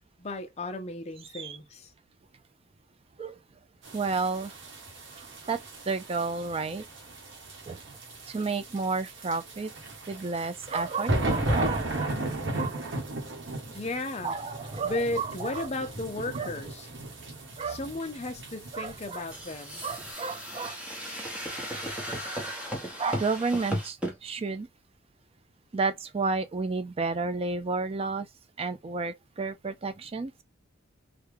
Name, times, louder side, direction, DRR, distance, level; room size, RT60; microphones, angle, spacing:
voice 1, 0.2-1.9 13.7-14.4 14.8-16.9 17.7-19.8, left 2 dB, 30° left, 0.6 m, -35 dB
sound 1, 3.8-20.1, right 1 dB, 60° right, 1.1 m, -35 dB
voice 2, 3.9-4.5 5.2-5.6 5.9-6.8 7.7-7.8 8.3-9.7 10.1-12.2 12.5-12.7 14.2-15.7 16.3-16.5 17.6-17.8 18.7-19.2 19.8-20.8 23.0-24.7 25.7-28.3 28.6-30.3, right 4 dB, 30° right, 0.4 m, -31 dB
sound 2, 19.3-24.1, equal, 5° right, 1.0 m, -35 dB
3.4 x 2.3 x 3.3 m
head